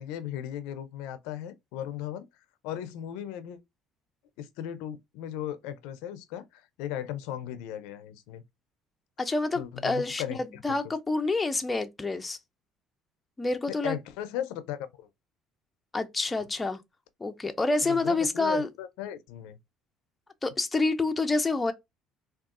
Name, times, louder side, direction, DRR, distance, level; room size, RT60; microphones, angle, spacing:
voice 1, 0.0-2.3 2.6-3.6 4.4-8.4 9.5-10.8 13.7-15.1 17.8-19.6, left 11 dB, 90° left, 0.4 m, -37 dB
voice 2, 9.2-12.4 13.4-14.0 15.9-16.8 17.2-18.7 20.4-21.7, left 3 dB, 15° left, 0.4 m, -28 dB
3.5 x 2.3 x 2.4 m
cardioid pair, 115°, 0 cm